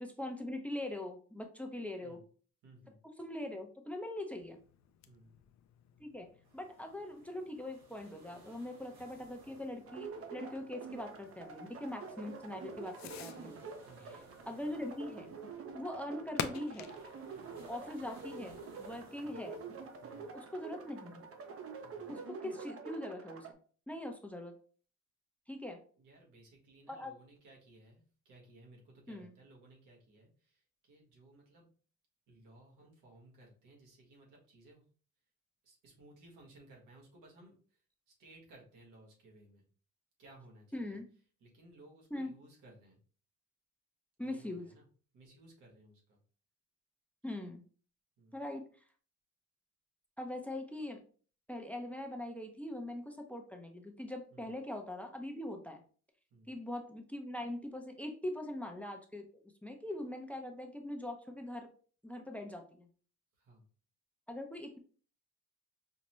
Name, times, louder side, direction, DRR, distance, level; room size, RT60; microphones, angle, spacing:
voice 1, 0.0-2.2 3.2-4.6 6.0-6.3 6.5-13.6 14.0-14.2 14.5-15.3 15.7-16.9 17.7-19.6 20.3-21.3 22.1-23.6 23.9-24.6 25.5-25.8 26.9-27.1 29.1-29.3 40.7-41.0 42.1-42.3 44.2-44.7 47.2-47.6 48.3-48.7 50.2-51.0 51.5-55.8 56.5-61.7 62.0-62.9 64.3-64.8, left 1 dB, 5° left, 4 dB, 0.6 m, -42 dB
voice 2, 2.6-3.0 5.0-5.4 13.8-14.2 19.2-19.4 20.0-20.3 21.8-22.1 26.0-31.7 32.3-34.8 35.6-37.8 38.1-39.6 40.2-41.0 41.4-43.0 44.2-44.9 45.1-46.2 48.2-48.4 54.3-54.5 56.3-56.6 63.4-63.6, right 2 dB, 90° right, -1 dB, 1.5 m, -59 dB
Fireworks, 4.3-18.9, left 9 dB, 65° left, 0.5 m, -50 dB
sound 1, 6.4-22.3, right 2 dB, 65° right, 1.6 m, -62 dB
sound 2, 9.9-23.5, right 5 dB, 50° right, 0.7 m, -47 dB
5.2 x 2.1 x 3.1 m, 0.42 s
cardioid pair, 90°, 30 cm